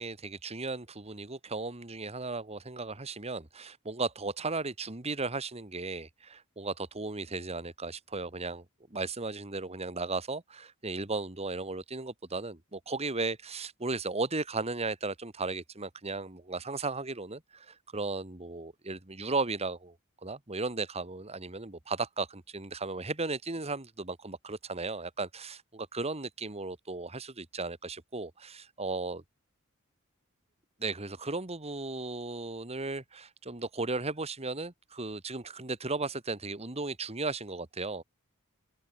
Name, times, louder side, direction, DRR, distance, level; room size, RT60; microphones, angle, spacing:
voice 1, 0.0-8.6 8.9-20.0 20.2-29.2 30.8-38.0, right 3 dB, 30° right, 1.8 m, -35 dB
head